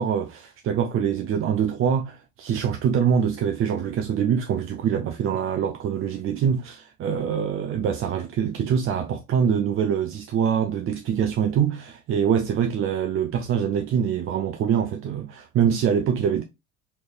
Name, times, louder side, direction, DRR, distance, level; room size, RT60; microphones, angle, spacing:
voice 1, 0.0-16.4, right 8 dB, 35° right, 0.5 m, -24 dB
4.3 x 3.2 x 2.4 m
hypercardioid pair, 65°, 40 cm